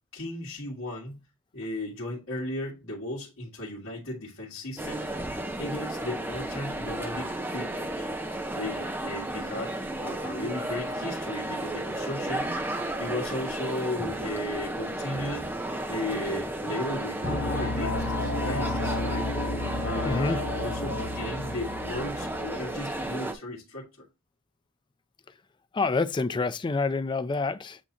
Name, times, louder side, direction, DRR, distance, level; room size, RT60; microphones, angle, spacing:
voice 1, 0.1-1.3 1.5-5.0 5.6-8.1 8.5-15.5 15.9-19.3 19.8-24.1, left 1 dB, 70° left, 1.8 m, -36 dB
sound 1, 4.8-23.3, right 1 dB, 10° right, 0.7 m, -33 dB
sound 2, 17.2-22.8, left 2 dB, 90° left, 0.8 m, -32 dB
voice 2, 20.0-20.4 25.7-27.8, left 3 dB, 20° left, 0.3 m, -27 dB
8.3 x 2.8 x 4.1 m
head